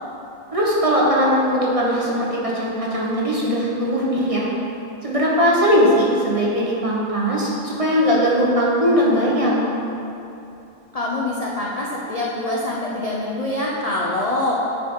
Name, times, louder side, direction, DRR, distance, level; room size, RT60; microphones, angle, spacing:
voice 1, 0.5-4.5 5.0-9.7, equal, 30° right, -5 dB, 0.9 m, -19 dB
voice 2, 10.9-14.5, left 1 dB, 50° left, -4 dB, 0.4 m, -25 dB
8.9 x 4.7 x 3.7 m, 2.8 s
omnidirectional pair, 1.5 m